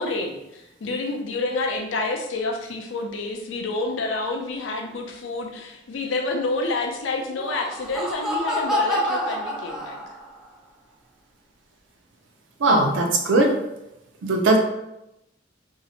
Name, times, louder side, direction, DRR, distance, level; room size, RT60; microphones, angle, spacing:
voice 1, 0.0-10.2, left 2 dB, 85° left, 3 dB, 0.4 m, -28 dB
Laughter, 7.2-10.4, left 1 dB, ahead, 0.3 m, -28 dB
voice 2, 12.6-13.5 14.2-14.6, right 2 dB, 80° right, 2 dB, 0.5 m, -19 dB
2.6 x 2.0 x 2.8 m, 0.88 s
head